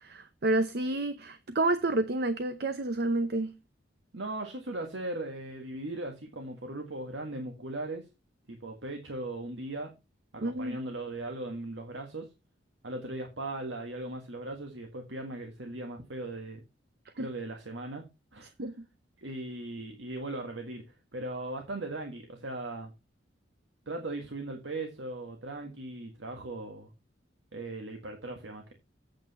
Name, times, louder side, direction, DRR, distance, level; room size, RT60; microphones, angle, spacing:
voice 1, 0.0-3.5 10.4-10.8 17.2-17.3 18.6-18.7, right 2 dB, 55° right, 0.7 m, -29 dB
voice 2, 4.1-8.0 8.5-9.9 10.3-12.3 12.8-16.6 17.2-18.0 18.3-18.5 19.2-22.9 23.8-26.9 27.5-28.7, right 2 dB, 75° right, 1.7 m, -38 dB
8.8 x 8.1 x 4.2 m
head